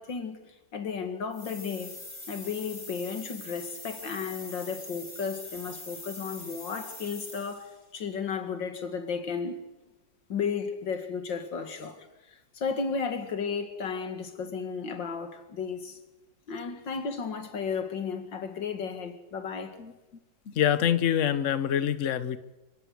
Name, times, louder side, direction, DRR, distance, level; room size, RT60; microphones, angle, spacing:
voice 1, 0.0-2.0 2.3-9.6 10.3-16.0 16.5-19.8, left 5 dB, 80° left, 2.7 m, -34 dB
sound 1, 1.3-7.8, left 1 dB, 20° left, 3.2 m, -43 dB
voice 2, 20.5-22.4, left 10 dB, 50° left, 1.2 m, -25 dB
27.0 x 17.0 x 7.9 m
omnidirectional pair, 2.0 m